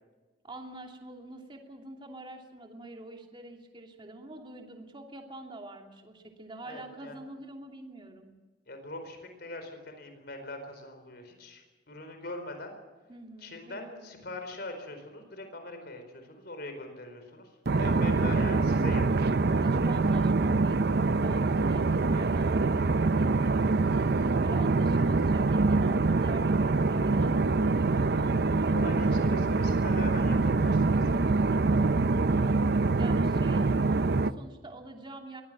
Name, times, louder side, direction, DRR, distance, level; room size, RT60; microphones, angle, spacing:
voice 1, 0.4-8.3 13.1-14.3 19.6-28.2 32.3-35.4, right 1 dB, 30° right, 2 dB, 2.8 m, -46 dB
voice 2, 6.6-7.2 8.7-12.7 13.4-17.5 17.8-19.3 28.7-31.1, left 2 dB, 60° left, 6 dB, 4.4 m, -42 dB
sound 1, 17.7-34.3, right 3 dB, 60° right, 0.6 m, -25 dB
23.0 x 17.0 x 7.5 m, 1.3 s
head